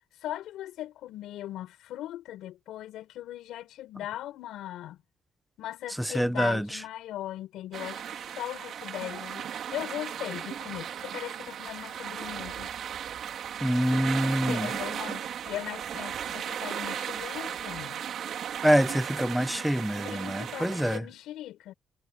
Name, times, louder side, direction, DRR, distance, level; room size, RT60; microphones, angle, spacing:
voice 1, 0.2-5.0 5.6-12.7 14.5-18.0 20.0-21.7, left 13 dB, 85° left, 5.9 m, -39 dB
voice 2, 6.0-6.8 13.6-14.7 18.6-21.0, equal, ahead, 1.0 m, -26 dB
sound 1, 7.7-21.0, right 9 dB, 65° right, 3.9 m, -36 dB
cardioid pair, 90°, 0 cm